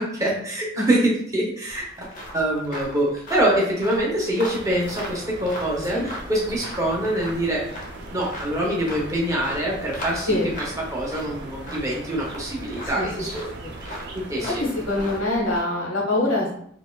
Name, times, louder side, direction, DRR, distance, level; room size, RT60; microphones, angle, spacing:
voice 1, 0.0-2.1 2.3-7.7 8.1-10.4 10.9-13.5 13.8-14.6, right 1 dB, 15° right, -3 dB, 0.7 m, -25 dB
sound 1, 1.7-15.6, equal, 40° left, 0.7 m, -39 dB
sound 2, 4.5-15.2, right 2 dB, 60° right, 0.5 m, -39 dB
voice 2, 14.4-16.5, left 2 dB, 85° left, -2 dB, 1.0 m, -24 dB
3.9 x 2.4 x 2.2 m, 0.66 s
head